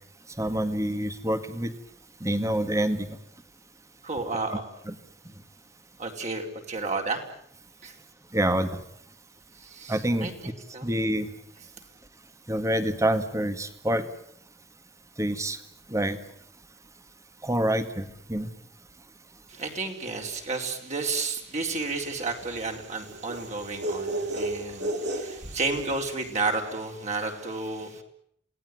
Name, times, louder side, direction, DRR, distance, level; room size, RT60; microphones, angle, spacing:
voice 1, 0.4-1.7 2.2-3.2 4.5-4.6 4.9-5.0 8.3-8.8 9.9-10.5 10.8-11.3 12.5-14.1 15.2-15.6 15.9-16.2 17.4-18.5, right 1 dB, 15° right, 10 dB, 2.0 m, -27 dB
voice 2, 4.0-4.6 6.0-7.2 7.8-7.9 9.6-10.9 19.5-28.0, right 3 dB, 40° right, 2 dB, 4.4 m, -32 dB
sound 1, 21.8-26.3, right 1 dB, 65° right, 3.1 m, -33 dB
28.5 x 18.5 x 9.5 m, 0.71 s
head